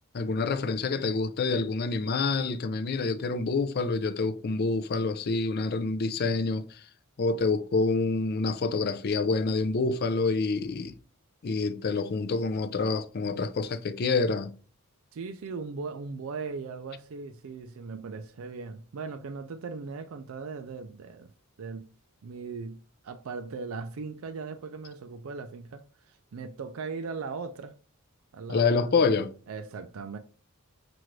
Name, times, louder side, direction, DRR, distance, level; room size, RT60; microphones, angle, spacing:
voice 1, 0.1-6.8 7.2-10.9 11.4-14.5 28.5-29.3, left 4 dB, 45° left, 0.4 m, -27 dB
voice 2, 15.1-21.3 21.6-21.9 22.2-27.7 28.3-29.0 29.5-30.2, right 4 dB, 65° right, 0.4 m, -38 dB
5.9 x 2.5 x 3.1 m
head